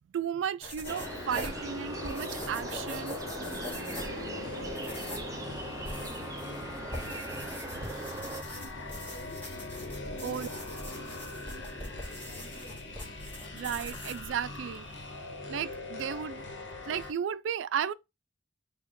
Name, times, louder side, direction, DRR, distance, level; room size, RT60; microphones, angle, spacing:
voice 1, 0.1-3.2 10.2-10.5 13.5-15.1 15.5-16.4 16.8-17.9, right 8 dB, 90° right, 0.3 m, -34 dB
sound 1, 0.6-15.4, equal, 10° left, 1.4 m, -44 dB
sound 2, 0.8-17.1, left 2 dB, 80° left, 1.0 m, -41 dB
sound 3, 0.9-8.4, right 3 dB, 20° right, 0.5 m, -41 dB
voice 2, 4.0-8.0 8.5-9.5 10.1-12.9, left 1 dB, 50° left, 1.0 m, -52 dB
4.2 x 2.3 x 4.6 m
head